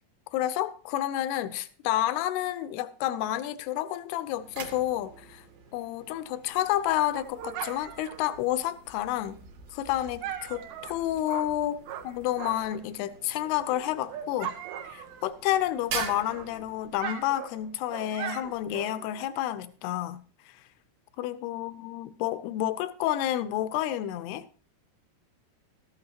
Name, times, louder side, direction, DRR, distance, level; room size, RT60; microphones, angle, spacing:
voice 1, 0.3-5.4 5.7-9.4 9.7-11.8 12.0-14.6 14.9-20.2 21.2-24.5, left 13 dB, 80° left, 2.7 m, -30 dB
sound 1, 4.2-17.2, right 6 dB, 55° right, 2.5 m, -45 dB
Dog, 6.6-12.9 13.2-15.5 15.8-19.2, right 9 dB, 75° right, 2.9 m, -40 dB
13.5 x 12.0 x 2.9 m
omnidirectional pair, 4.7 m